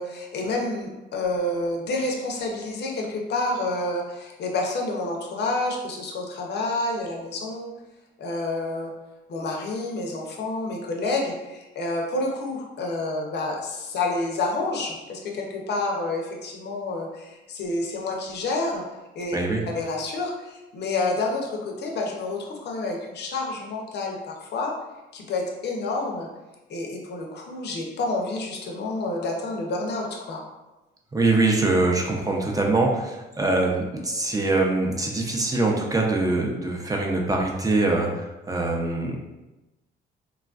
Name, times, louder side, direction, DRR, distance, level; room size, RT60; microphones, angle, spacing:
voice 1, 0.0-7.7 8.2-8.9 9.3-18.8 19.2-19.4 19.7-24.8 25.1-26.3 26.7-30.4, left 2 dB, 60° left, 0 dB, 0.6 m, -29 dB
voice 2, 31.1-39.2, right 2 dB, 20° right, 0 dB, 0.5 m, -23 dB
3.1 x 2.4 x 2.4 m, 1.0 s
cardioid pair, 90°, 20 cm